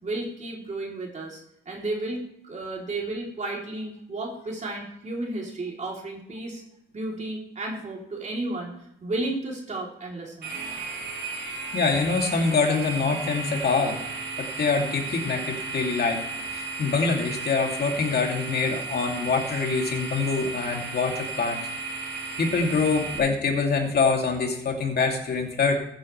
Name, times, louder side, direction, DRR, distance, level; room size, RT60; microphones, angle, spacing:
voice 1, 0.0-6.6 6.9-8.7 9.0-10.6, right 2 dB, 35° right, -2 dB, 3.3 m, -33 dB
sound 1, 10.4-23.2, right 4 dB, 60° right, 4.1 m, -34 dB
voice 2, 11.7-14.0 14.4-16.2 16.5-21.6 22.4-25.8, left 4 dB, 55° left, 2 dB, 2.7 m, -25 dB
15.0 x 9.0 x 3.3 m, 0.77 s
cardioid pair, 90°, 20 cm